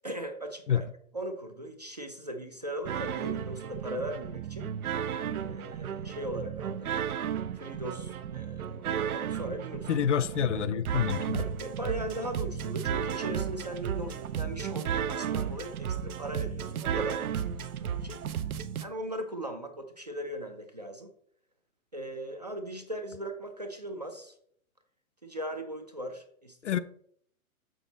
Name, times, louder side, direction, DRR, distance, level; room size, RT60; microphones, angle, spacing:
voice 1, 0.0-0.9 1.1-4.7 5.3-6.9 7.6-9.9 11.3-18.2 18.8-21.1 21.9-24.3 25.2-26.7, right 1 dB, 30° right, 0.4 m, -39 dB
sound 1, 2.9-18.8, right 8 dB, 80° right, 0.8 m, -34 dB
voice 2, 9.9-11.4 26.6-26.8, left 8 dB, 55° left, 0.5 m, -27 dB
6.6 x 6.3 x 3.9 m
hypercardioid pair, 175°, 43 cm